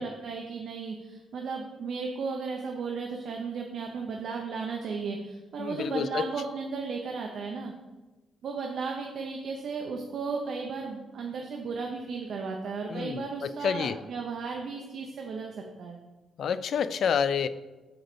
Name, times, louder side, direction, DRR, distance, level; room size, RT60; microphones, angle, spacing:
voice 1, 0.0-7.7 8.4-16.0, right 4 dB, 55° right, 1 dB, 0.8 m, -35 dB
voice 2, 5.6-6.3 12.9-14.0 16.4-17.5, left 7 dB, 55° left, 14 dB, 0.3 m, -29 dB
7.8 x 3.9 x 6.7 m, 1.2 s
wide cardioid pair, 170°, 0 cm